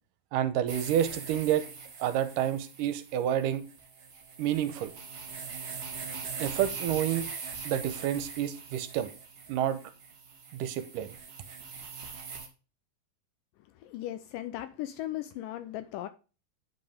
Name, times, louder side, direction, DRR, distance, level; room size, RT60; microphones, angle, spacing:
voice 1, 0.3-1.7 2.0-3.6 4.4-4.9 6.4-7.3 7.7-9.1 9.5-9.8 10.5-11.2, right 11 dB, 75° right, 2.3 m, -29 dB
sound 1, 0.7-12.5, right 5 dB, 55° right, 1.0 m, -42 dB
voice 2, 13.8-16.1, left 13 dB, 80° left, 2.1 m, -37 dB
9.3 x 5.3 x 3.5 m
omnidirectional pair, 4.1 m